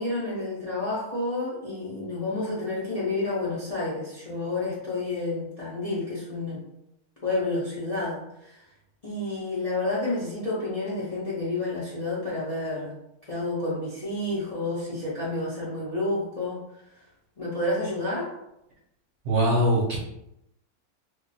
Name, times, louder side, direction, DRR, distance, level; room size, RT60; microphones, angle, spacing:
voice 1, 0.0-6.6 7.2-8.6 9.0-12.9 13.3-16.6 17.4-18.3, left 2 dB, 40° left, -8 dB, 0.6 m, -30 dB
voice 2, 19.2-20.0, right 1 dB, 55° right, -3 dB, 0.9 m, -22 dB
2.5 x 2.2 x 3.9 m, 0.84 s
omnidirectional pair, 1.6 m